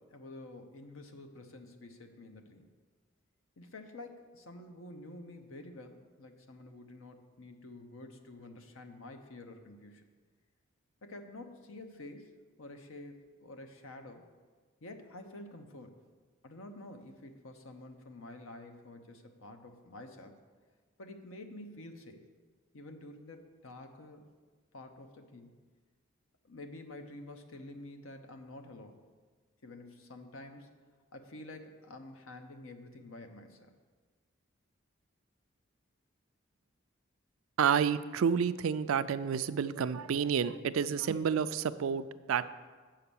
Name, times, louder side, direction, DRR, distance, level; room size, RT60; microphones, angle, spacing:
voice 1, 0.0-2.7 3.6-10.1 11.0-14.2 14.8-16.0 16.4-20.4 21.0-22.3 22.7-24.2 24.7-25.5 26.4-29.0 29.6-30.7 31.1-33.7, left 2 dB, 80° left, 6 dB, 0.8 m, -49 dB
voice 2, 37.6-42.5, right 7 dB, 80° right, 13 dB, 0.4 m, -30 dB
7.3 x 5.8 x 6.9 m, 1.4 s
head